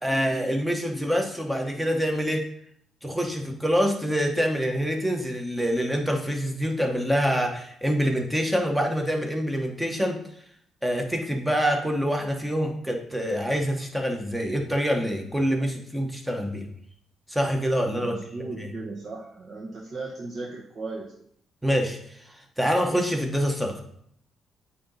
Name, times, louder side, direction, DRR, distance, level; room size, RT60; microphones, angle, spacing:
voice 1, 0.0-2.4 3.0-10.2 10.8-16.6 17.3-18.7 21.6-22.0 22.6-23.8, equal, 5° right, 2 dB, 1.1 m, -26 dB
voice 2, 18.0-21.1, right 3 dB, 50° right, -4 dB, 1.2 m, -36 dB
8.5 x 2.9 x 4.0 m, 0.68 s
cardioid pair, 90°, 0 cm